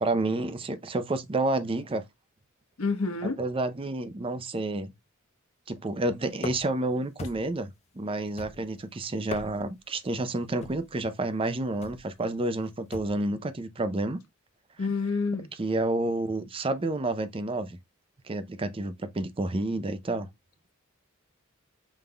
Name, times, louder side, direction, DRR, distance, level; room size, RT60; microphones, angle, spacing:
voice 1, 0.0-2.0 3.4-4.9 5.7-7.7 8.0-14.2 15.6-17.8 18.3-20.3, right 2 dB, 25° right, 0.5 m, -29 dB
voice 2, 2.8-3.4 14.8-15.5, left 4 dB, 90° left, 1.1 m, -28 dB
sound 1, 6.4-6.8 7.2-7.7 8.4-8.8 9.2-9.8 10.6-10.9 11.8-12.1 12.9-13.2, left 3 dB, 30° left, 0.5 m, -40 dB
5.3 x 3.5 x 2.2 m
head